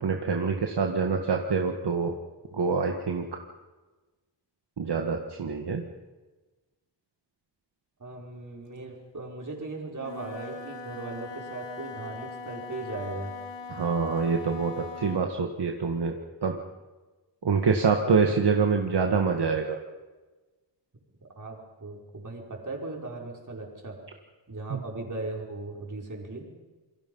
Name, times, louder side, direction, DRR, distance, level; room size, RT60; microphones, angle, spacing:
voice 1, 0.0-2.1 2.5-3.2 4.8-5.8 13.7-16.1 16.4-16.6 17.4-19.8 24.7-24.8, right 5 dB, 70° right, 3 dB, 1.8 m, -26 dB
voice 2, 8.0-13.3 20.9-21.0 21.3-24.0 24.5-26.5, right 2 dB, 45° right, 0 dB, 5.1 m, -38 dB
Wind instrument woodwind instrument, 9.9-15.3, left 4 dB, 85° left, 2.4 m, -41 dB
28.0 x 23.5 x 5.6 m, 1.2 s
wide cardioid pair, 110°, 42 cm